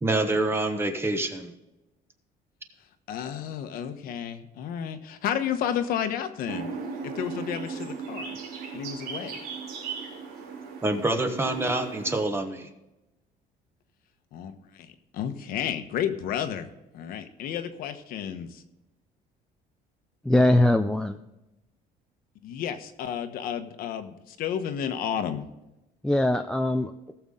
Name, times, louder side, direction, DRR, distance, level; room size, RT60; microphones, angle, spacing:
voice 1, 0.0-1.5 10.8-12.7, right 2 dB, 15° right, 6 dB, 1.2 m, -26 dB
voice 2, 3.1-6.7 7.0-8.4 8.7-9.4 14.3-16.7 16.9-18.6 22.4-25.5, left 9 dB, 65° left, 8 dB, 1.2 m, -32 dB
sound 1, 6.5-12.2, right 5 dB, 85° right, 3.2 m, -37 dB
voice 3, 20.2-21.2 26.0-27.1, left 1 dB, 5° left, 5 dB, 0.4 m, -22 dB
18.0 x 7.1 x 3.7 m, 0.97 s
cardioid pair, 155°, 16 cm